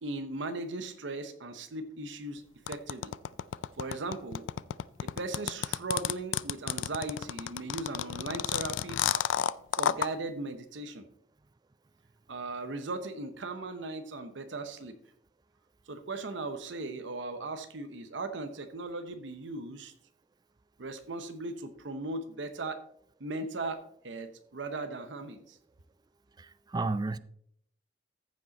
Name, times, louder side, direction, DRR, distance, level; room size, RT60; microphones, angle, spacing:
voice 1, 0.0-3.1 3.8-4.5 5.0-9.2 9.8-11.1 12.3-15.0 15.9-19.9 20.8-22.8 23.2-25.6, right 2 dB, 75° right, 0.9 m, -38 dB
sound 1, 2.7-10.1, left 9 dB, 85° left, 0.4 m, -30 dB
voice 2, 26.4-27.2, right 3 dB, 20° right, 0.4 m, -32 dB
14.5 x 5.3 x 4.1 m
head